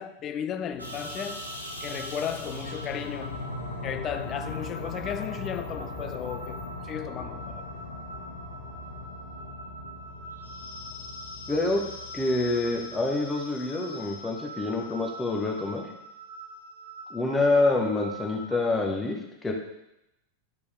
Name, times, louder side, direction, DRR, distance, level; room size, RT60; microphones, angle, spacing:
voice 1, 0.0-1.5 1.8-3.4 3.8-7.7, left 9 dB, 30° left, 0.5 m, -35 dB
sound 1, 0.7-13.2, left 4 dB, 70° left, 1.2 m, -42 dB
sound 2, 0.8-18.6, equal, 90° left, 1.2 m, -41 dB
voice 2, 11.5-11.8 12.1-15.9 17.1-19.2 19.4-19.5, left 2 dB, 10° left, 1.4 m, -26 dB
11.5 x 5.1 x 3.5 m
figure-of-eight pair, 90°, 0 cm